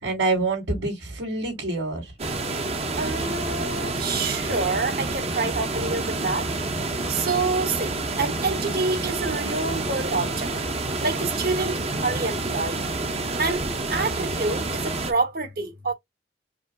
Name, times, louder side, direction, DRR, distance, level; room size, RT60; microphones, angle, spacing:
voice 1, 0.0-2.1, right 3 dB, 75° right, 2.6 m, -26 dB
sound 1, 2.2-15.1, right 2 dB, 35° right, 0.9 m, -28 dB
voice 2, 3.0-6.5 7.1-7.9 8.2-10.5 11.0-12.8 13.4-13.6 13.9-15.9, right 3 dB, 55° right, 1.6 m, -27 dB
5.0 x 2.0 x 3.9 m
head